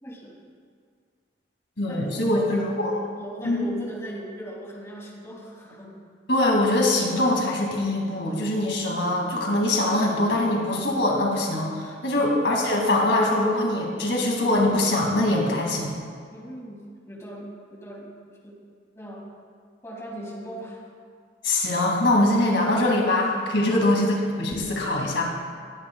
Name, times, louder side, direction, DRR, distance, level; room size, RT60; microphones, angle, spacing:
voice 1, 0.0-0.3 1.9-2.6 3.2-5.9 12.1-12.2 16.3-18.2 18.4-18.6 18.9-19.3 19.8-20.9 23.6-23.8, right 1 dB, 15° left, -3 dB, 2.1 m, -39 dB
voice 2, 1.8-3.0 3.4-3.7 6.3-15.9 21.4-25.2, left 1 dB, 90° left, -1 dB, 2.2 m, -23 dB
19.5 x 9.4 x 2.3 m, 2.1 s
head